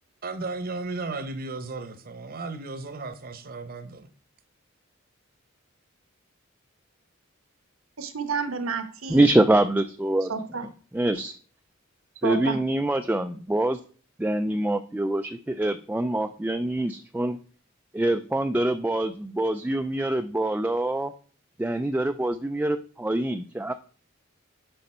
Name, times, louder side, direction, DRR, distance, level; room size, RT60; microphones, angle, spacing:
voice 1, 0.2-4.1, right 3 dB, 45° right, 0.8 m, -35 dB
voice 2, 8.0-9.3 10.3-10.7 12.2-12.6, right 5 dB, 80° right, 1.1 m, -30 dB
voice 3, 9.1-10.3 10.9-11.4 12.2-13.8 14.2-17.4 17.9-21.1 21.6-23.7, right 1 dB, 10° right, 0.3 m, -25 dB
7.8 x 5.3 x 4.3 m
head